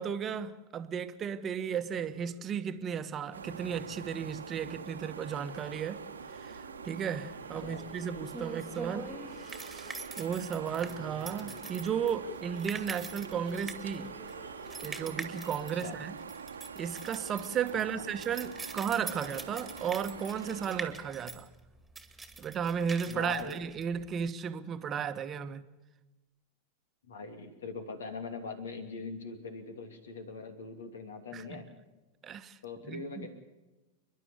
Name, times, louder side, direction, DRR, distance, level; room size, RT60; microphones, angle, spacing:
voice 1, 0.0-6.0 6.3-14.1 14.8-16.1 16.7-21.5 22.4-25.6 31.3-31.6 32.2-32.6 32.8-33.3, right 7 dB, 30° right, 1.2 m, -35 dB
sound 1, 1.9-16.8, left 1 dB, 40° left, 3.1 m, -53 dB
sound 2, 3.3-20.9, right 6 dB, 75° right, 1.3 m, -45 dB
sound 3, 7.6-24.3, right 3 dB, 5° right, 2.1 m, -45 dB
voice 2, 17.7-18.1 23.1-23.6 27.0-31.6 32.6-33.3, left 4 dB, 70° left, 2.8 m, -42 dB
29.5 x 11.5 x 8.2 m
figure-of-eight pair, 90°, 0 cm